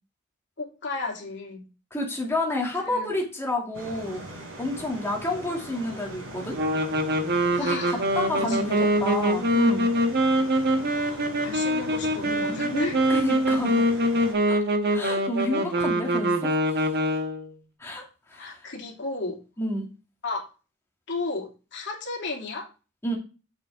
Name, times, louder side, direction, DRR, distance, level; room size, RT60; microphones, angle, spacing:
voice 1, 0.6-1.6 2.8-3.1 7.5-8.0 8.3-8.9 10.8-13.1 18.3-19.3 20.2-20.4 21.1-22.6, left 3 dB, 60° left, -2 dB, 2.9 m, -34 dB
voice 2, 1.9-4.2 4.6-6.6 7.6-9.9 13.1-13.9 14.5-14.6 14.9-16.8 17.8-18.7 19.6-19.9 23.0-23.2, left 1 dB, 10° left, -1 dB, 2.4 m, -30 dB
sound 1, 3.7-14.3, right 1 dB, 90° right, 4.1 m, -41 dB
sound 2, 6.5-17.5, equal, 50° right, 1.3 m, -24 dB
7.8 x 6.6 x 3.5 m, 0.32 s
head